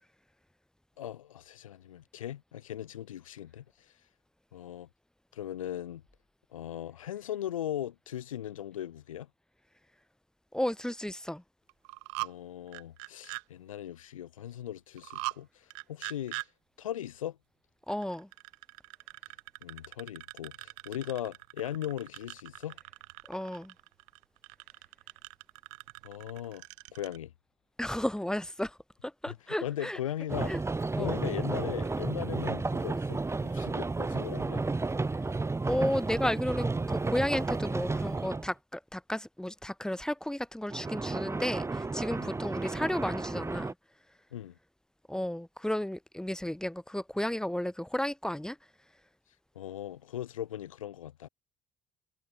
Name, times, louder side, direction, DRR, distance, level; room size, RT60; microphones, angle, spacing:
voice 1, 1.0-3.6 4.5-4.9 5.3-6.0 6.5-9.3 12.2-16.4 16.8-17.4 19.6-22.8 26.0-26.6 26.9-27.3 29.3-30.5 31.0-34.6 42.2-42.3 44.3-44.6 49.6-51.3, left 11 dB, 90° left, 0.4 m, -38 dB
voice 2, 10.5-11.4 17.9-18.3 23.3-23.7 27.8-28.8 29.0-30.0 30.5-30.6 30.9-31.1 35.7-43.7 45.1-48.6, left 1 dB, 5° left, 1.0 m, -33 dB
sound 1, 11.7-12.3 12.7-13.4 15.0-15.4 15.7-16.5 17.9-27.2, right 38 dB, 75° right, 1.3 m, -42 dB
sound 2, 30.3-38.5 40.7-43.7, right 3 dB, 15° right, 0.8 m, -32 dB
figure-of-eight pair, 50°, 17 cm